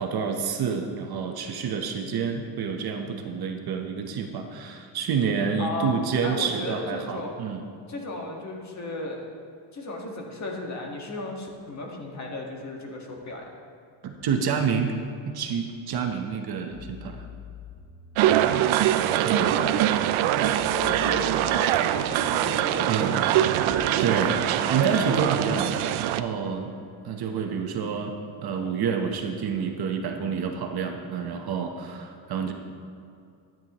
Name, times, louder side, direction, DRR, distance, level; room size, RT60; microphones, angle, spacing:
voice 1, 0.0-7.6 14.0-14.9 15.3-17.3 19.2-19.6 22.9-23.2 24.0-26.8 27.0-32.5, right 6 dB, 50° right, 4 dB, 0.9 m, -28 dB
voice 2, 5.6-7.3 7.9-9.2 9.7-13.4 18.3-18.8 19.0-20.1 20.3-23.1, left 2 dB, 35° left, 0 dB, 1.6 m, -35 dB
sound 1, 16.7-18.7 20.5-22.5 24.4-24.5, left 7 dB, 80° left, 1.6 m, -45 dB
sound 2, 18.2-26.2, right 12 dB, 80° right, 0.6 m, -23 dB
sound 3, 23.5-26.5, left 2 dB, 50° left, 1.3 m, -39 dB
12.5 x 9.0 x 3.0 m, 2.5 s
cardioid pair, 125°, 47 cm